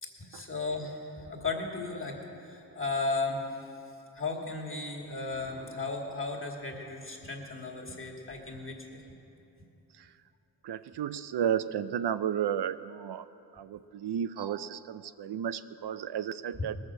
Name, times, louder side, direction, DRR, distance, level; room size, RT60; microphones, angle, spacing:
voice 1, 0.0-3.5 4.1-9.0 16.6-16.7, left 3 dB, 30° left, -2 dB, 2.3 m, -35 dB
voice 2, 10.6-13.3 13.5-16.8, right 9 dB, 80° right, 13 dB, 0.5 m, -33 dB
19.5 x 6.6 x 7.6 m, 2.7 s
cardioid pair, 60°, 40 cm